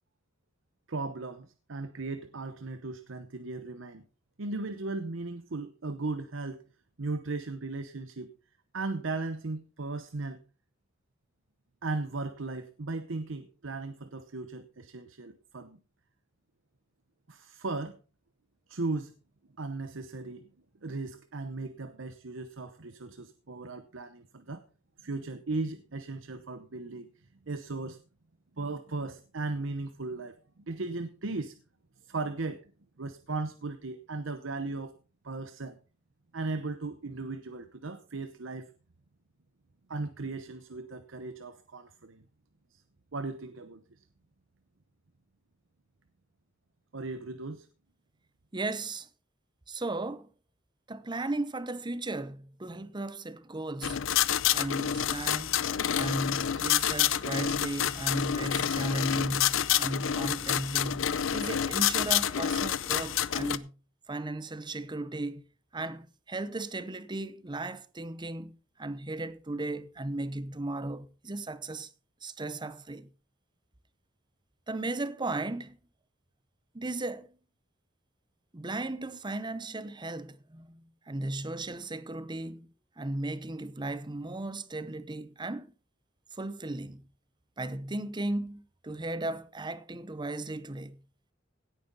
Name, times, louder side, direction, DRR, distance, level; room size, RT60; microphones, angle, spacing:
voice 1, 0.9-4.0 4.4-6.6 7.0-8.3 8.7-10.4 11.8-15.8 17.3-18.0 18.7-19.1 19.6-20.5 20.8-24.6 25.0-27.1 27.5-28.0 28.6-31.6 32.1-32.6 33.0-34.9 35.2-35.8 36.3-38.7 39.9-42.2 43.1-43.8 46.9-47.7, right 3 dB, 75° right, 0.9 m, -37 dB
voice 2, 48.5-49.1 49.7-50.3 50.9-54.0 54.5-55.6 55.9-63.7 64.1-65.5 65.7-71.9 72.2-73.1 74.7-75.8 76.7-77.3 78.5-82.7 83.0-85.7 86.3-87.0 87.6-91.0, right 2 dB, 25° right, 0.8 m, -36 dB
sound 1, 53.8-63.6, left 10 dB, 80° left, 0.6 m, -28 dB
17.0 x 9.3 x 4.0 m
head